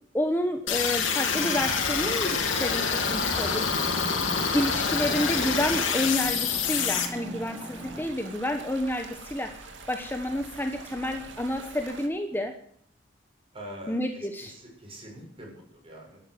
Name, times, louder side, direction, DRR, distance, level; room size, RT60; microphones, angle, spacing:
voice 1, 0.1-3.9 4.5-12.5 13.9-14.5, left 1 dB, 10° left, 5 dB, 1.2 m, -30 dB
sound 1, 0.7-7.0, left 6 dB, 85° left, 2.7 m, -26 dB
sound 2, 2.8-12.1, right 3 dB, 70° right, 2.5 m, -45 dB
sound 3, 3.0-8.1, equal, 10° right, 1.6 m, -42 dB
voice 2, 13.5-16.2, equal, 30° right, -1 dB, 7.2 m, -44 dB
12.0 x 11.0 x 7.9 m, 0.63 s
head